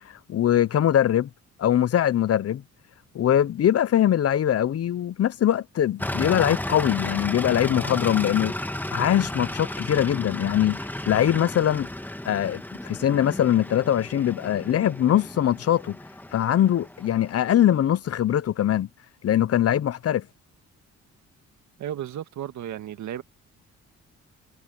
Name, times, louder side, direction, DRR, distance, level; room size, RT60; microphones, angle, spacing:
voice 1, 0.3-1.3 1.6-2.6 3.1-8.5 8.9-10.8 11.1-11.9 12.2-15.9 16.3-18.9 19.2-20.3, left 11 dB, 50° left, 0.8 m, -22 dB
sound 1, 6.0-17.7, left 1 dB, 5° left, 1.8 m, -33 dB
voice 2, 21.8-23.2, right 11 dB, 70° right, 1.9 m, -34 dB
cardioid pair, 90°, 30 cm